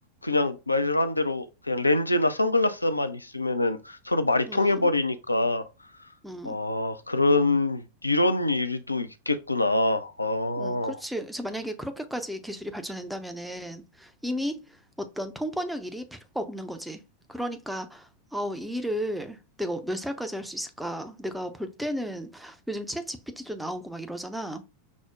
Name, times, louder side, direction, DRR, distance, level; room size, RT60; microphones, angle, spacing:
voice 1, 0.2-5.7 6.4-10.9, left 2 dB, 85° left, 0.3 m, -25 dB
voice 2, 4.5-4.9 6.2-6.6 10.6-17.0 17.3-24.6, equal, 5° right, 0.5 m, -34 dB
6.0 x 2.0 x 2.3 m
figure-of-eight pair, 90°, 0 cm